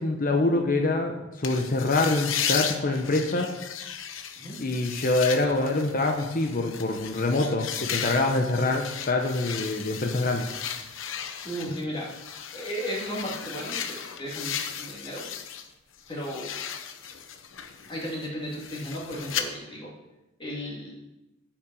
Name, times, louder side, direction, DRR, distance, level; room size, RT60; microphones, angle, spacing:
voice 1, 0.0-3.5 4.6-10.5, left 2 dB, 45° left, 3 dB, 0.8 m, -25 dB
sound 1, 1.4-15.7 16.0-19.4, left 8 dB, 80° left, 0.8 m, -35 dB
voice 2, 11.4-15.2 16.1-16.8 17.9-19.9 20.4-20.9, equal, 25° left, -4 dB, 2.3 m, -35 dB
8.5 x 5.9 x 6.9 m, 0.99 s
head